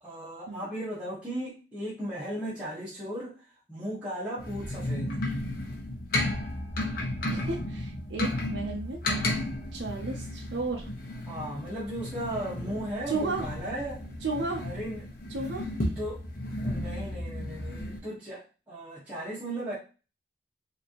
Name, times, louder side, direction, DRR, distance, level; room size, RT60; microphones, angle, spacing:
voice 1, 0.0-5.2 11.3-14.0 14.6-15.1 15.9-16.3 16.6-19.7, right 1 dB, 10° right, -9 dB, 1.4 m, -36 dB
sound 1, 4.4-18.0, left 1 dB, 55° left, 1.0 m, -33 dB
voice 2, 7.3-9.0 9.7-10.9 12.6-12.7 13.1-13.5 14.2-14.7 15.3-15.7, right 3 dB, 85° right, 0 dB, 0.7 m, -33 dB
5.0 x 2.9 x 2.9 m, 0.33 s
head